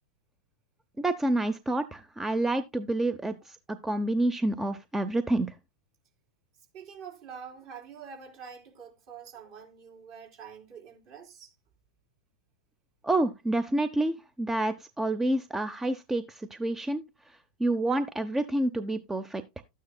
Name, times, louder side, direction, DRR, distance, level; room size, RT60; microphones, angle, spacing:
voice 1, 1.0-5.5 13.0-17.0 17.6-19.6, right 2 dB, 10° right, 0.6 m, -28 dB
voice 2, 6.7-11.5, right 7 dB, 55° right, 3.7 m, -46 dB
12.5 x 9.4 x 2.2 m
hypercardioid pair, 100°, 3 cm